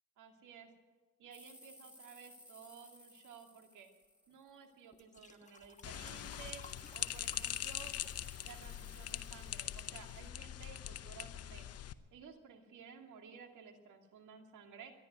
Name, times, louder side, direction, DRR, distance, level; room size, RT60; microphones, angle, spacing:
voice 1, 0.2-0.7 1.2-3.9 4.3-6.6 6.9-8.0 8.4-11.7 12.1-14.9, right 7 dB, 65° right, 5 dB, 2.4 m, -55 dB
sound 1, 1.3-4.9 5.5-10.3, left 1 dB, 5° right, 5.1 m, -59 dB
sound 2, 4.3-4.4 4.9-8.4 8.7-9.1 9.8-9.9, left 4 dB, 20° left, 1.4 m, -58 dB
sound 3, 5.8-11.9, left 11 dB, 50° left, 0.8 m, -42 dB
13.5 x 11.0 x 9.1 m, 1.3 s
supercardioid pair, 75°, 32 cm